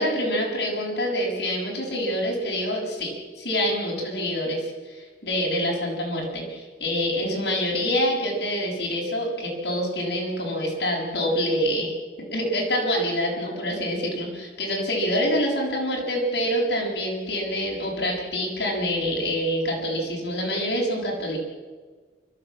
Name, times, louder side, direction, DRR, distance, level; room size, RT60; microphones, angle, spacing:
voice 1, 0.0-11.9 12.3-21.4, equal, 65° left, -2 dB, 7.3 m, -26 dB
28.0 x 13.5 x 8.7 m, 1.4 s
head